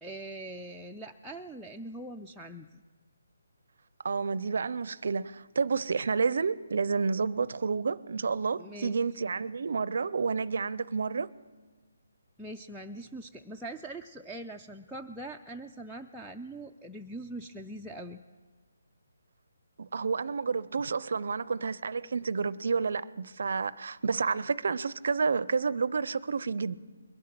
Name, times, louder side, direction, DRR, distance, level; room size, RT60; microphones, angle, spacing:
voice 1, 0.0-2.8 8.6-9.0 12.4-18.2, right 1 dB, ahead, 0.3 m, -42 dB
voice 2, 4.0-11.3 19.8-26.8, right 5 dB, 65° right, 0.4 m, -30 dB
22.0 x 7.5 x 6.0 m
hypercardioid pair, 165°, 0 cm